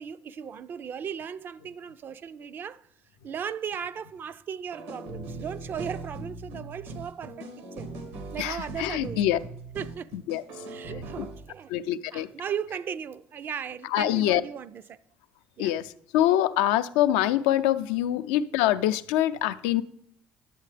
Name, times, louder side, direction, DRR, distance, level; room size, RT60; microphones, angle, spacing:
voice 1, 0.0-2.9 3.2-7.9 8.3-9.2 9.8-10.1 10.7-11.8 12.1-15.0 15.6-15.7, right 7 dB, 45° right, 0.4 m, -37 dB
sound 1, 4.7-11.5, right 2 dB, 80° right, 1.3 m, -40 dB
voice 2, 8.4-9.4 10.1-10.8 11.2-11.3 11.7-12.3 13.9-14.4 15.6-19.8, left 13 dB, 90° left, 0.4 m, -25 dB
11.0 x 7.6 x 3.3 m
supercardioid pair, 85°, 5 cm